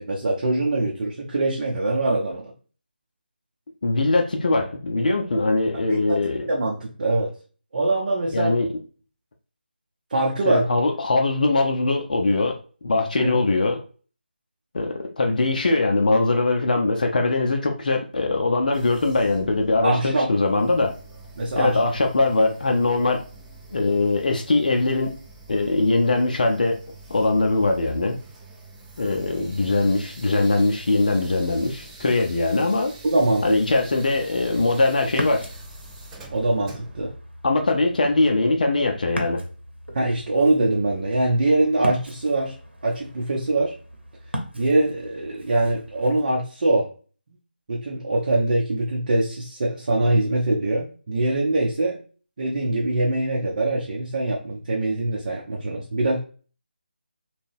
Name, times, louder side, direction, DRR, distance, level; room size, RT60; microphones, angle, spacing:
voice 1, 0.1-2.5 5.9-6.2 6.5-7.3 7.7-8.5 10.1-10.6 13.2-13.4 19.8-20.3 21.4-21.8 33.1-33.4 36.3-37.1 39.9-42.5 42.8-43.7 44.5-46.9 47.7-52.0 52.4-56.2, right 2 dB, 45° right, -2 dB, 0.7 m, -23 dB
voice 2, 3.8-6.5 8.3-8.7 10.4-12.6 12.8-13.8 14.7-20.9 21.6-23.2 23.7-25.2 25.5-26.8 27.1-28.2 29.0-32.9 33.4-35.5 37.4-39.4, left 2 dB, 50° left, 3 dB, 0.5 m, -21 dB
sound 1, 18.7-37.1, right 2 dB, 10° right, 0.7 m, -45 dB
Ocean, 35.1-46.2, equal, 90° right, 0.9 m, -38 dB
3.7 x 2.2 x 2.6 m, 0.38 s
figure-of-eight pair, 155°, 6 cm